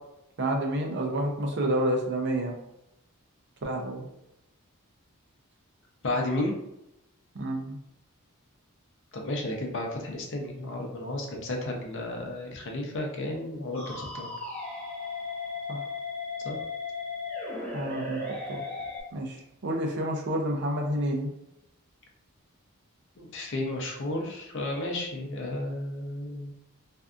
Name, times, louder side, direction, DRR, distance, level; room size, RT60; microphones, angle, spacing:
voice 1, 0.4-2.5 3.6-4.0 7.3-7.7 15.7-15.8 17.7-18.6 19.1-19.4 19.6-21.3, right 1 dB, 50° right, 1 dB, 0.5 m, -29 dB
voice 2, 6.0-6.5 9.1-14.3 16.4-16.6 23.2-26.5, left 1 dB, 60° left, 1 dB, 0.6 m, -32 dB
sound 1, 13.7-19.0, left 3 dB, 10° left, 0.7 m, -36 dB
2.6 x 2.3 x 2.4 m, 0.84 s
head